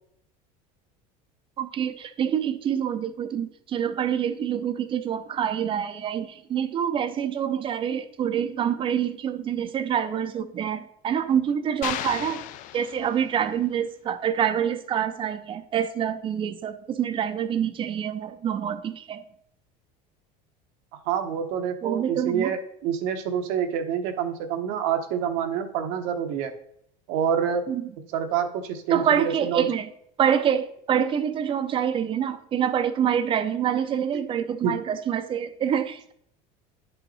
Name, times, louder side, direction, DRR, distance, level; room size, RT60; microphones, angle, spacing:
voice 1, 1.6-12.5 12.7-19.2 21.8-22.5 27.7-27.9 28.9-29.9 30.2-36.1, right 8 dB, 30° right, 12 dB, 0.5 m, -26 dB
sound 1, 11.8-13.5, left 12 dB, 50° left, 0.5 m, -35 dB
voice 2, 21.1-26.5 27.1-27.6 28.1-29.7 34.1-34.2 34.6-34.8, right 8 dB, 70° right, 6 dB, 1.0 m, -27 dB
10.0 x 5.5 x 4.2 m, 0.72 s
cardioid pair, 150°, 18 cm